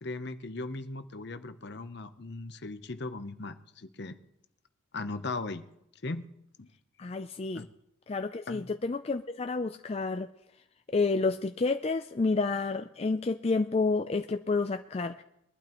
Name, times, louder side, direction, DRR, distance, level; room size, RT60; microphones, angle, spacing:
voice 1, 0.0-4.2 4.9-5.6 6.0-6.3 6.6-6.7 7.5-7.6 8.5-8.7, left 3 dB, 55° left, 10 dB, 0.8 m, -38 dB
voice 2, 7.0-7.7 8.1-10.3 10.9-15.2, left 3 dB, 30° left, 7 dB, 0.4 m, -29 dB
22.0 x 12.0 x 3.0 m, 0.83 s
head